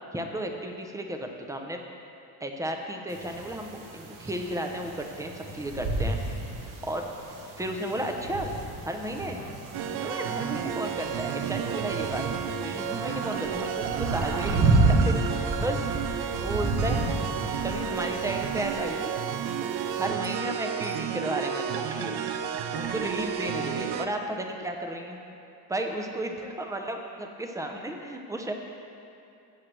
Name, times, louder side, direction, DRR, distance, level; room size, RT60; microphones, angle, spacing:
voice 1, 0.1-1.8 2.4-7.1 7.6-8.5 8.8-9.4 9.9-12.2 12.6-15.9 16.4-17.1 17.6-19.1 20.0-22.2 22.7-25.2 25.7-28.5, right 1 dB, 10° right, 3 dB, 0.7 m, -33 dB
sound 1, 3.1-20.1, right 2 dB, 50° right, 1.2 m, -31 dB
sound 2, 9.7-24.1, right 8 dB, 65° right, 0.7 m, -32 dB
15.5 x 7.6 x 3.3 m, 2.7 s
cardioid pair, 145°, 42 cm